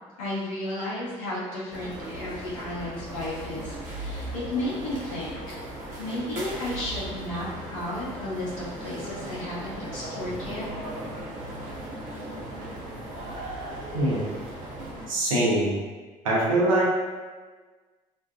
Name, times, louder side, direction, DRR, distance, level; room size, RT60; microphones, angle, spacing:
voice 1, 0.2-5.6 6.0-10.7, left 1 dB, 80° left, -7 dB, 0.6 m, -33 dB
sound 1, 1.7-15.1, right 1 dB, 50° right, 0.7 m, -37 dB
voice 2, 13.9-14.3 15.1-15.8 16.2-16.9, right 1 dB, 85° right, -5 dB, 0.6 m, -23 dB
2.5 x 2.2 x 2.2 m, 1.4 s
hypercardioid pair, 60°, 17 cm